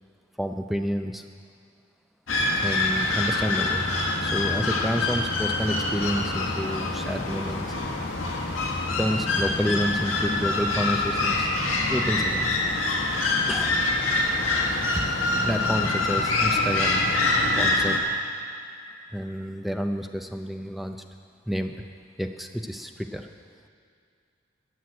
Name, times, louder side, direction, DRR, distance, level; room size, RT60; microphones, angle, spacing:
voice 1, 0.4-1.2 2.5-3.9 4.2-8.1 9.0-11.5 11.9-12.5 13.5-13.8 14.9-15.1 15.5-17.2 17.6-18.0 19.1-21.0 21.5-21.8 22.2-23.3, equal, ahead, 5 dB, 0.5 m, -29 dB
sound 1, 2.3-18.0, left 2 dB, 80° left, 1.6 m, -25 dB
14.0 x 6.4 x 9.4 m, 2.3 s
head